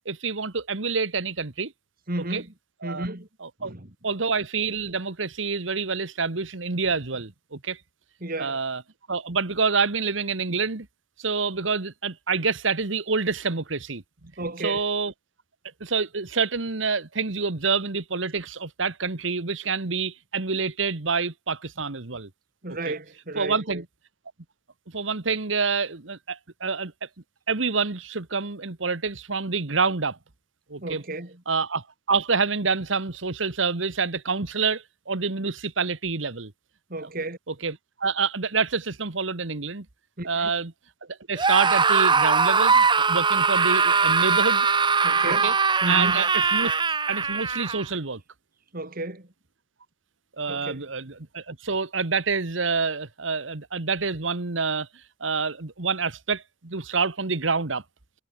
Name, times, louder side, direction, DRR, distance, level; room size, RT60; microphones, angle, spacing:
voice 1, 0.1-1.7 2.3-2.4 2.8-3.1 3.4-3.7 4.0-7.8 8.4-8.8 9.1-10.9 11.2-14.0 14.6-15.1 15.8-22.3 22.9-23.0 23.4-23.8 24.9-26.9 27.5-30.2 30.7-31.0 31.5-36.5 37.5-39.9 40.3-40.7 41.3-44.7 45.3-45.5 45.9-46.7 47.1-48.2 50.4-54.9 55.2-57.8, right 4 dB, 85° right, 1.6 m, -27 dB
voice 2, 2.1-2.5 2.8-3.3 3.6-3.9 8.2-8.6 14.4-14.8 22.6-23.8 30.8-31.4 36.9-37.4 40.2-40.5 45.0-45.6 45.8-46.2 48.7-49.3 50.5-50.9, right 2 dB, 50° right, 3.6 m, -33 dB
Screaming, 41.4-47.8, right 5 dB, 25° right, 1.1 m, -21 dB
head